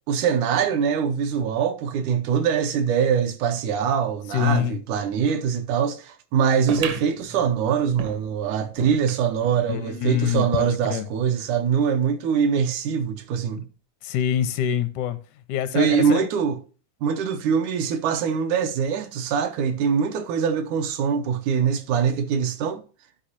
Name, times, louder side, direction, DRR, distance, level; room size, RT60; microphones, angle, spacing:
voice 1, 0.1-13.7 15.7-16.6 17.0-22.8, right 7 dB, 80° right, 2.2 m, -23 dB
voice 2, 4.3-4.8 9.7-11.1 14.0-15.2 15.5-16.2, left 10 dB, 85° left, 2.0 m, -25 dB
sound 1, 6.7-9.6 10.1-10.2 10.4-10.5 11.3-11.4, right 6 dB, 65° right, 1.6 m, -35 dB
11.5 x 5.1 x 2.9 m
omnidirectional pair, 3.5 m